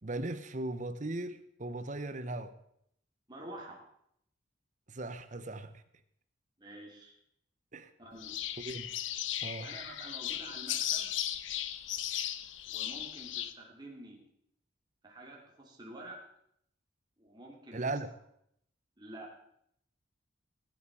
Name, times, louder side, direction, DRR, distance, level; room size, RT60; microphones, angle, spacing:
voice 1, 0.0-2.5 4.9-5.8 7.7-7.9 8.6-8.9 9.4-9.7 17.7-18.1, right 2 dB, 40° right, 11 dB, 0.9 m, -38 dB
voice 2, 3.3-3.8 6.6-7.1 8.0-8.4 9.6-11.1 12.7-14.2 15.0-16.2 17.2-17.8 19.0-19.3, right 1 dB, 20° right, -2 dB, 3.0 m, -48 dB
sound 1, 8.2-13.5, left 11 dB, 80° left, 0.8 m, -36 dB
18.0 x 8.4 x 4.8 m, 0.73 s
head